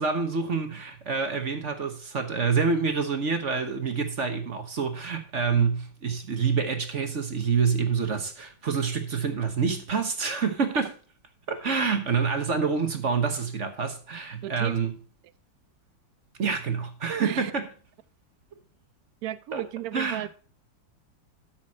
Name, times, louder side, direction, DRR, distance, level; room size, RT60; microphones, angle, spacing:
voice 1, 0.0-10.9 11.5-14.9 16.4-17.6 19.5-19.6 19.9-20.3, right 5 dB, 45° right, 1.2 m, -27 dB
voice 2, 14.4-14.7 17.2-17.5 19.2-20.3, right 13 dB, 75° right, 0.8 m, -34 dB
12.5 x 6.2 x 4.2 m
omnidirectional pair, 2.1 m